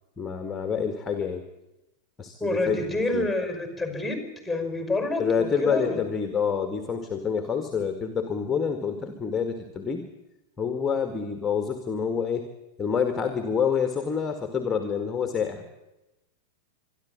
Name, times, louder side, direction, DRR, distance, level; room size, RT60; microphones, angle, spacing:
voice 1, 0.2-1.5 2.2-3.3 5.2-10.1 10.6-12.5 12.8-15.6, left 6 dB, 15° left, 7 dB, 2.0 m, -27 dB
voice 2, 2.4-6.0, left 2 dB, ahead, 6 dB, 5.4 m, -28 dB
26.5 x 11.5 x 8.8 m, 0.97 s
figure-of-eight pair, 90°, 0 cm